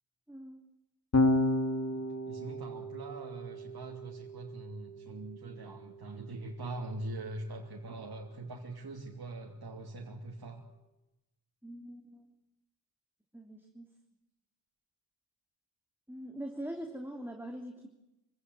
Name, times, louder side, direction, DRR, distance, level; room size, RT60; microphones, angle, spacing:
voice 1, 0.3-0.6 11.6-12.3 13.3-13.9 16.1-17.9, right 1 dB, 5° right, 2 dB, 3.1 m, -43 dB
Electric guitar / Bass guitar, 1.1-7.5, left 1 dB, 40° left, 2.5 m, -34 dB
voice 2, 1.9-10.6, right 2 dB, 70° right, -1 dB, 3.1 m, -43 dB
26.0 x 16.5 x 9.6 m, 0.93 s
cardioid pair, 70°, 39 cm